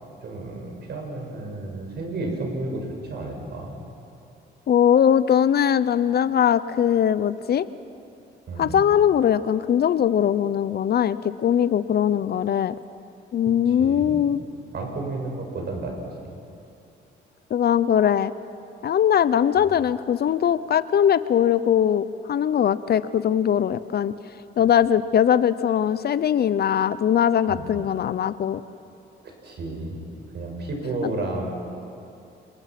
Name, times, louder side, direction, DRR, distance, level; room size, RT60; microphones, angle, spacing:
voice 1, 0.2-3.7 8.5-8.9 13.7-14.2 14.7-15.9 19.6-19.7 27.5-27.7 29.4-30.0 30.3-31.5, right 2 dB, 60° right, 2 dB, 5.7 m, -32 dB
voice 2, 4.7-7.6 8.6-12.7 13.3-14.4 17.5-18.3 18.8-24.1 24.6-28.6 31.0-31.1, left 9 dB, 55° left, 15 dB, 0.7 m, -21 dB
28.0 x 22.0 x 6.0 m, 2.7 s
cardioid pair, 90°, 20 cm